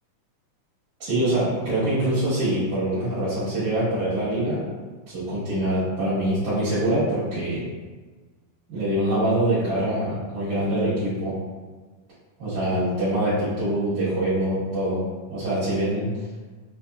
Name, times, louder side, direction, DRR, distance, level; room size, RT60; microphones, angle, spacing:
voice 1, 1.0-4.6 5.1-7.6 8.7-11.3 12.4-15.0 15.3-16.1, right 1 dB, 65° right, -14 dB, 2.7 m, -24 dB
5.7 x 2.6 x 2.3 m, 1.4 s
omnidirectional pair, 3.8 m